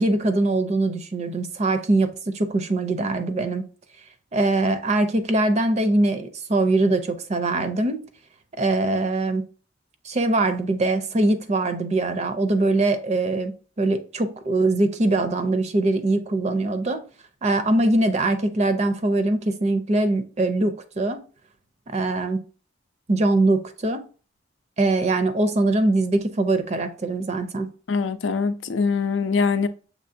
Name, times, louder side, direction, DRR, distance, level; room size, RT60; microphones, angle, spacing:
voice 1, 0.0-3.6 4.3-8.0 8.6-9.4 10.0-17.0 17.4-21.2 21.9-22.4 23.1-24.0 24.8-27.7, right 2 dB, 35° right, 0.5 m, -22 dB
voice 2, 27.9-29.7, left 5 dB, 85° left, 0.5 m, -23 dB
6.6 x 3.1 x 2.6 m
head